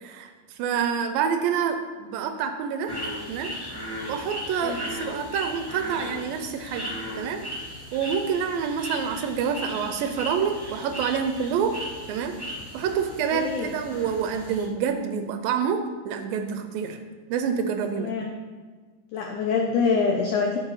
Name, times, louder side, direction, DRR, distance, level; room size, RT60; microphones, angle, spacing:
voice 1, 0.0-2.9 3.3-3.5 4.1-6.9 7.2-7.4 7.9-11.8 12.1-12.3 12.7-17.0 17.3-18.1, right 7 dB, 80° right, 6 dB, 2.2 m, -27 dB
sound 1, 2.9-14.6, equal, 35° left, 0.3 m, -37 dB
voice 2, 13.3-13.7 17.9-18.3 19.1-20.6, left 5 dB, 85° left, 2 dB, 1.7 m, -25 dB
12.0 x 6.6 x 3.1 m, 1.5 s
omnidirectional pair, 4.4 m